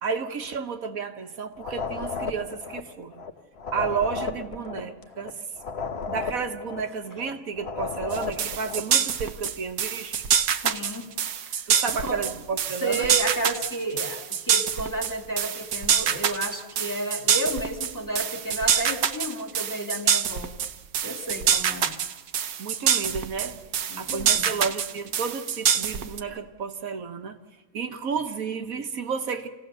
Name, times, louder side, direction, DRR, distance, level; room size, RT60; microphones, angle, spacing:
voice 1, 0.0-3.2 3.7-5.4 6.1-10.2 11.7-13.1 22.6-23.6 24.0-27.4 27.7-29.5, right 5 dB, 70° right, 6 dB, 1.5 m, -32 dB
sound 1, 1.6-8.9, left 5 dB, 45° left, 1.2 m, -34 dB
sound 2, 8.1-26.2, right 8 dB, 85° right, 1.4 m, -25 dB
voice 2, 10.6-11.1 11.4-11.6 12.0-12.2 12.8-20.5 21.0-21.9 23.9-24.6, right 1 dB, 15° left, 3 dB, 1.8 m, -32 dB
28.5 x 16.5 x 6.7 m, 1.2 s
omnidirectional pair, 1.5 m